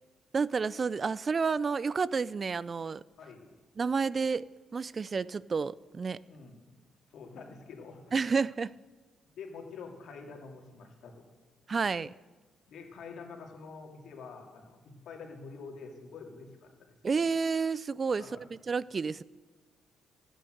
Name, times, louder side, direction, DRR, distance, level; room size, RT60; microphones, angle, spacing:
voice 1, 0.3-3.0 3.8-6.2 8.1-8.7 11.7-12.1 17.0-19.2, right 5 dB, 35° right, 0.3 m, -30 dB
voice 2, 3.2-3.5 6.3-6.6 7.1-8.1 9.4-11.3 12.7-17.2 18.2-18.4, left 4 dB, 70° left, 2.8 m, -47 dB
14.5 x 9.1 x 7.8 m
cardioid pair, 90°, 0 cm